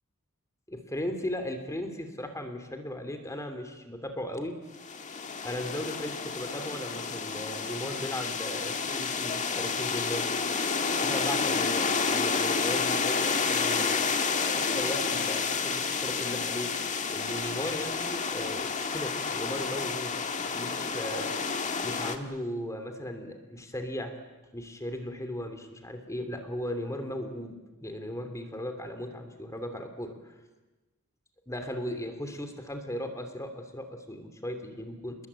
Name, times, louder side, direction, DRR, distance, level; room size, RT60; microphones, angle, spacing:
voice 1, 0.7-4.6 5.4-10.3 11.0-14.0 14.5-16.7 17.1-21.3 21.8-24.1 24.5-27.5 27.8-30.3 31.5-35.2, left 1 dB, 15° left, 7 dB, 2.9 m, -37 dB
sound 1, 4.8-22.2, left 5 dB, 35° left, 1.8 m, -30 dB
29.5 x 21.0 x 8.8 m, 1.2 s
head